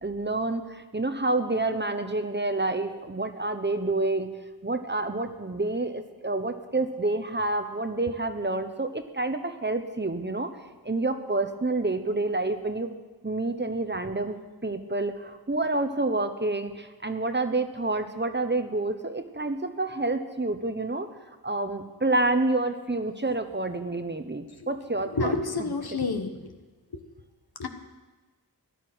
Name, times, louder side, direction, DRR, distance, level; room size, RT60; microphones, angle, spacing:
voice 1, 0.0-4.3 4.6-10.5 10.8-12.9 13.2-14.4 14.6-21.1 21.4-25.7, right 2 dB, 25° right, 8 dB, 1.1 m, -28 dB
voice 2, 25.2-26.5 27.6-27.7, left 3 dB, 65° left, 6 dB, 1.4 m, -28 dB
14.5 x 11.0 x 6.2 m, 1.2 s
wide cardioid pair, 55°, 40 cm